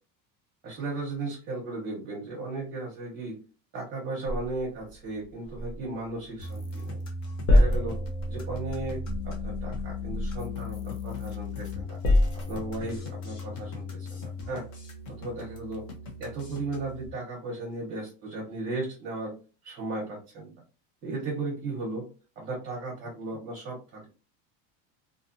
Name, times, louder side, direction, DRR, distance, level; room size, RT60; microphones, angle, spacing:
voice 1, 0.6-3.4 3.7-7.0 7.5-8.0 8.3-12.0 12.5-14.7 15.1-15.8 16.2-19.3 19.6-20.5 21.0-22.1 22.4-24.1, right 2 dB, 30° right, -3 dB, 0.8 m, -35 dB
sound 1, 4.3-6.8 7.1-11.3 11.7-13.0, left 1 dB, 75° left, 0.8 m, -28 dB
sound 2, 6.4-17.1, left 3 dB, 45° left, 0.8 m, -37 dB
2.5 x 2.5 x 2.6 m, 0.34 s
cardioid pair, 165°, 41 cm